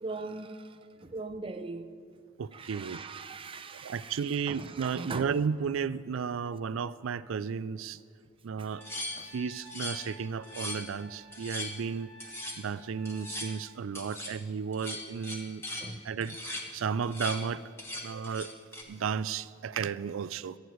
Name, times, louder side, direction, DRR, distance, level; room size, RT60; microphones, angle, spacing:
voice 1, 0.0-1.9 2.5-5.3 8.6-8.7 9.2-9.3 15.8-16.1, right 3 dB, 25° right, 0.6 m, -41 dB
voice 2, 2.4-3.0 3.8-8.0 8.4-8.8 9.2-12.1 12.6-15.6 16.0-16.4 16.7-17.6 18.0-18.5 18.9-20.6, right 6 dB, 85° right, 0.4 m, -33 dB
Trumpet, 8.6-13.7, equal, 85° left, 1.6 m, -53 dB
sound 1, 8.8-10.1 10.4-10.9 11.3-11.8 12.2-12.6 13.1-13.5 14.0-14.4 14.7-15.9 16.2-16.7 17.0-17.4 17.8-18.8, left 1 dB, 15° left, 1.4 m, -39 dB
26.5 x 9.5 x 3.1 m
head